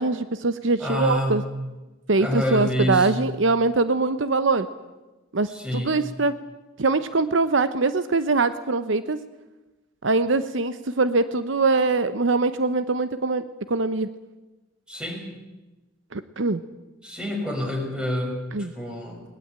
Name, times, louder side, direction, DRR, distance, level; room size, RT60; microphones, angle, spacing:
voice 1, 0.0-1.4 2.1-4.7 5.3-6.3 6.8-9.2 10.0-14.1 16.1-16.6 18.5-18.7, right 3 dB, 70° right, 12 dB, 0.9 m, -23 dB
voice 2, 0.8-1.5 2.2-3.2 5.5-6.0 14.9-15.3 17.0-19.2, left 1 dB, 5° right, 1 dB, 5.6 m, -27 dB
21.0 x 20.0 x 8.9 m, 1.1 s
head